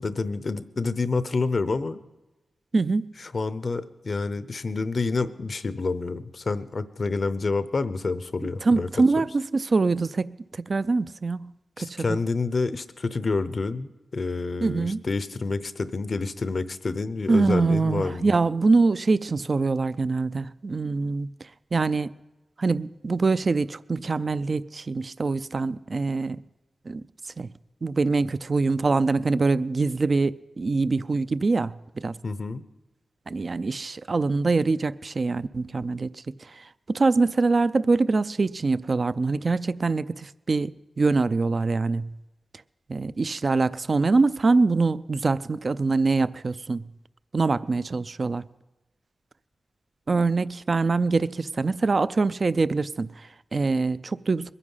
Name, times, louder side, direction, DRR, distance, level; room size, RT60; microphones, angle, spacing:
voice 1, 0.0-2.0 3.2-8.9 11.8-18.2 32.2-32.6, left 3 dB, 55° left, 0.7 m, -28 dB
voice 2, 2.7-3.1 8.4-11.5 11.8-12.1 14.6-15.0 17.3-21.3 21.7-22.1 22.6-26.4 26.9-27.5 27.8-32.2 33.3-42.1 42.9-46.9 47.3-48.5 50.1-54.5, right 3 dB, 45° right, 0.4 m, -24 dB
22.0 x 9.9 x 5.6 m
cardioid pair, 70°, 0 cm